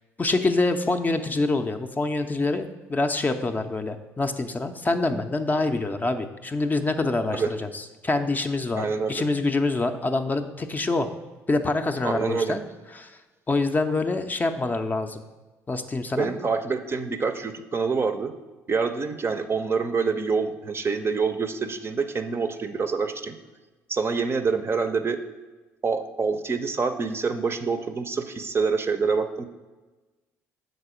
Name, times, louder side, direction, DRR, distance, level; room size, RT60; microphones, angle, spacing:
voice 1, 0.2-11.1 11.5-12.6 12.9-13.1 13.5-15.2 15.7-16.4, left 2 dB, 20° left, 6 dB, 0.5 m, -26 dB
voice 2, 8.8-9.2 12.0-12.6 16.2-18.3 18.7-23.4 23.9-25.2 25.8-29.5, right 5 dB, 30° right, 8 dB, 0.5 m, -26 dB
6.6 x 4.0 x 5.0 m, 1.2 s
hypercardioid pair, 55°, 8 cm